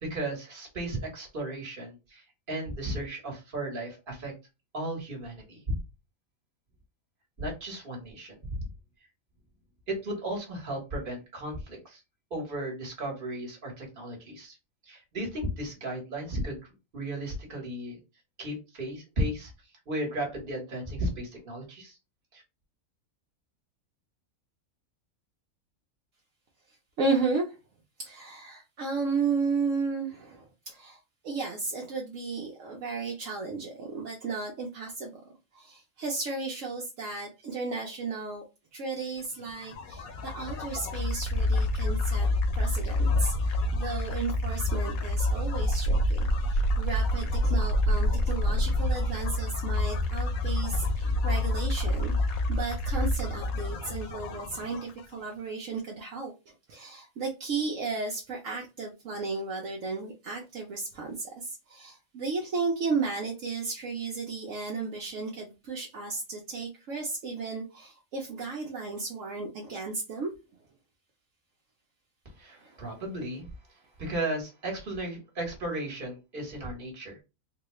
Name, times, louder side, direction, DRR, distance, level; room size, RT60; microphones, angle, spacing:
voice 1, 0.0-4.3 4.7-5.8 7.4-8.6 9.9-12.0 12.3-14.6 14.8-16.6 16.9-18.0 18.4-19.5 19.9-22.0 22.3-22.4 72.4-73.5 74.0-77.2, right 1 dB, 40° right, 0 dB, 1.4 m, -35 dB
voice 2, 27.0-27.6 28.0-35.1 35.5-38.4 38.7-42.3 42.5-56.3 56.7-70.3 72.5-72.8, right 4 dB, 70° right, 0 dB, 1.1 m, -34 dB
sound 1, 39.5-55.2, left 1 dB, 80° left, 1.2 m, -27 dB
3.9 x 2.3 x 3.0 m, 0.27 s
omnidirectional pair, 1.4 m